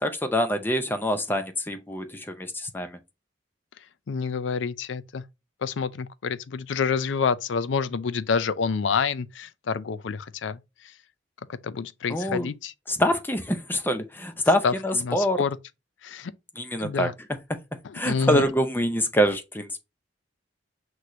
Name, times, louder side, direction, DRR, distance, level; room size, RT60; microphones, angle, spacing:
voice 1, 0.0-3.0 12.1-12.5 12.9-15.4 16.6-17.1 17.5-17.6 17.9-19.7, equal, 10° left, 0.6 m, -25 dB
voice 2, 4.1-5.2 5.6-10.6 11.5-12.7 14.6-14.7 15.0-15.6 16.0-16.3 16.8-17.1 17.8-18.5, left 5 dB, 85° left, 0.5 m, -28 dB
5.9 x 3.1 x 2.6 m
head